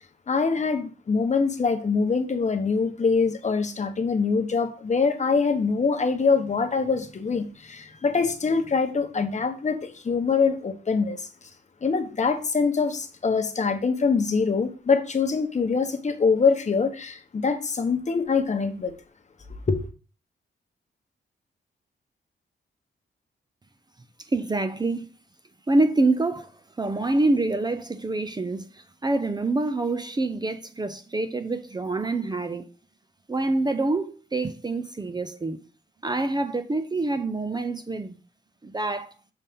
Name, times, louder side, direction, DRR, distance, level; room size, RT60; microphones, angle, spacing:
voice 1, 0.3-11.5 11.8-18.9 19.7-19.9, left 5 dB, 40° left, 1.0 m, -24 dB
voice 2, 24.3-25.1 25.7-26.5 26.8-32.6 33.3-35.6 36.0-38.2 38.6-39.1, right 2 dB, 20° right, 0.5 m, -26 dB
7.0 x 4.1 x 3.6 m
cardioid pair, 100°, 19 cm